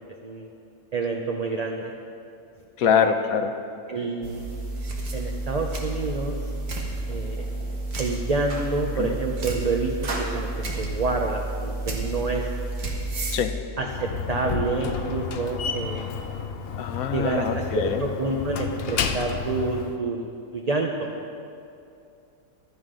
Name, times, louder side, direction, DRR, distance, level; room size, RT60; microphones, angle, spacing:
voice 1, 0.9-1.9 2.8-3.1 3.9-4.4 5.1-6.4 7.1-7.4 8.0-9.9 10.3-10.5 10.8-12.4 13.8-16.1 17.1-20.3 20.5-21.1, right 3 dB, 35° right, 0 dB, 0.7 m, -28 dB
voice 2, 2.8-3.5 9.0-9.2 13.3-13.5 16.8-18.0, left 7 dB, 75° left, 8 dB, 1.1 m, -24 dB
sound 1, 4.2-13.4, right 2 dB, 85° right, 2.0 m, -31 dB
Slam, 13.8-20.0, left 6 dB, 55° left, 0.7 m, -31 dB
15.0 x 12.5 x 3.8 m, 2.6 s
omnidirectional pair, 1.6 m